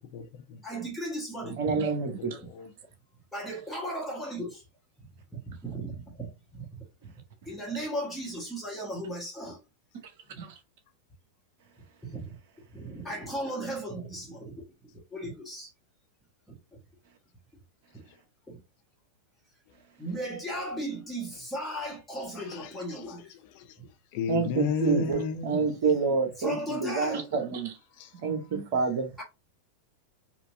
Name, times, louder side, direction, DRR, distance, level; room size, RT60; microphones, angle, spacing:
voice 1, 0.0-0.6 1.4-2.7 5.3-5.4 18.1-18.2 19.7-19.8 20.1-20.2 22.2-25.8 27.0-27.2 27.9-28.6, left 5 dB, 45° left, 0.7 m, -36 dB
voice 2, 0.6-1.5 3.3-4.6 5.3-6.8 7.4-9.6 11.8-11.9 12.1-12.2 12.7-14.6 15.1-15.7 16.5-16.6 17.9-18.0 18.5-18.6 20.0-23.2 26.4-27.2 29.2-29.3, right 1 dB, 5° left, 1.5 m, -36 dB
voice 3, 1.6-2.4 7.0-7.1 10.4-10.6 24.3-25.2 25.4-27.8 28.1-29.1, right 5 dB, 55° right, 0.9 m, -28 dB
4.3 x 2.6 x 2.6 m
figure-of-eight pair, 90°, 0 cm